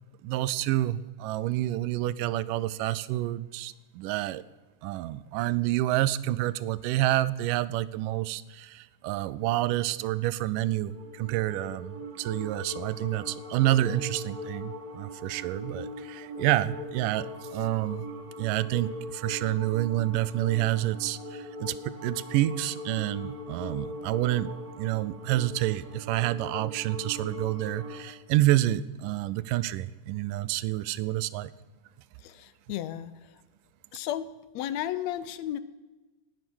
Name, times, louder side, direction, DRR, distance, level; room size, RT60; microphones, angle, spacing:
voice 1, 0.2-4.4 4.8-18.1 18.4-24.5 24.8-31.5, right 15 dB, 90° right, 17 dB, 2.2 m, -28 dB
sound 1, 10.5-28.1, left 1 dB, 40° right, 1.4 m, -40 dB
voice 2, 32.2-33.4 33.9-34.3 34.5-35.6, left 11 dB, 75° left, 14 dB, 1.7 m, -34 dB
18.5 x 9.5 x 6.2 m, 1.2 s
omnidirectional pair, 3.7 m